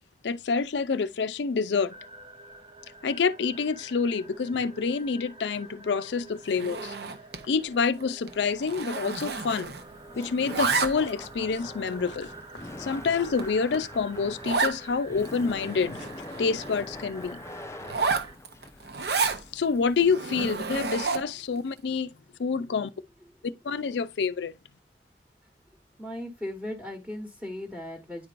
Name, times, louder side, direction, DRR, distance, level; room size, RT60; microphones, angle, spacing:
voice 1, 0.2-1.9 3.0-6.9 7.5-9.8 10.2-12.3 12.8-16.1 16.4-17.4 19.5-22.1 22.4-22.9 23.6-24.5, left 5 dB, 75° left, 0.4 m, -27 dB
sound 1, 1.9-18.4, right 3 dB, 25° right, 0.7 m, -48 dB
Zipper (clothing), 6.5-7.5 7.8-8.0 8.3-10.0 10.2-11.3 11.9-12.0 12.6-12.7 13.1-13.2 13.4-13.5 13.7-13.8 14.4-14.8 15.2-15.3 15.5-16.8 17.8-19.4 20.0-21.4, right 4 dB, 60° right, 0.7 m, -30 dB
Laughter, 9.6-20.1, left 2 dB, 15° left, 0.4 m, -44 dB
voice 2, 26.0-28.3, left 1 dB, 5° right, 1.1 m, -37 dB
10.0 x 4.5 x 2.5 m
head